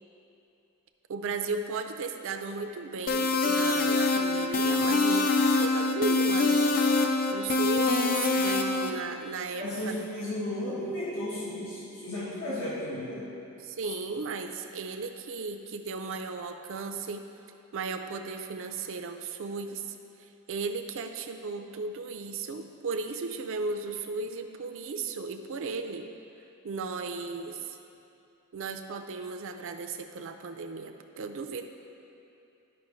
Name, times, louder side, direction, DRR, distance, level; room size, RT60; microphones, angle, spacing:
voice 1, 1.1-6.8 7.3-10.0 13.6-17.3 17.7-20.0 20.5-26.1 26.6-27.8 28.5-31.6, right 4 dB, 65° right, 6 dB, 0.5 m, -35 dB
sound 1, 3.1-8.9, left 3 dB, 40° left, 0.5 m, -24 dB
voice 2, 9.6-13.3, left 1 dB, 85° left, -9 dB, 1.5 m, -34 dB
12.0 x 5.2 x 3.1 m, 2.7 s
head